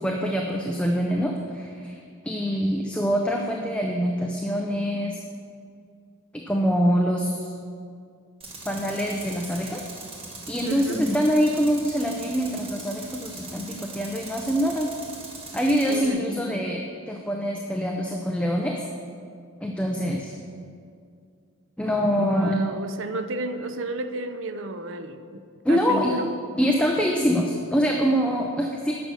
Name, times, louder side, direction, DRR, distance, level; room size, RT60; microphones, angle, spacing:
voice 1, 0.0-5.2 6.3-7.5 8.7-9.9 10.5-14.9 15.5-18.8 19.6-20.3 21.8-22.7 25.6-26.2 26.6-28.9, equal, 5° left, 1 dB, 0.5 m, -24 dB
Tools, 8.4-16.1, right 3 dB, 25° right, 1.4 m, -41 dB
voice 2, 10.6-11.1 15.9-16.4 22.1-26.3, right 1 dB, 60° right, 9 dB, 0.6 m, -32 dB
10.5 x 6.8 x 6.3 m, 2.3 s
head